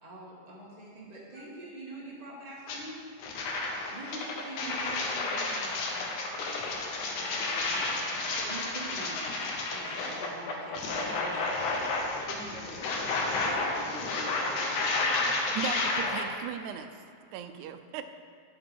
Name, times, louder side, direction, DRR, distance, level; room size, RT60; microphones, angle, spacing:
voice 1, 0.0-3.0 3.6-6.7 7.2-11.8 13.4-13.7, right 1 dB, 20° right, -6 dB, 1.1 m, -45 dB
sound 1, 2.7-2.8 3.2-16.2, left 3 dB, 85° left, 2.4 m, -31 dB
voice 2, 11.3-16.2, left 1 dB, 65° left, -6 dB, 0.8 m, -45 dB
voice 3, 15.5-17.0 17.3-18.0, right 8 dB, 85° right, 9 dB, 2.0 m, -37 dB
11.0 x 5.2 x 4.4 m, 2.4 s
omnidirectional pair, 3.4 m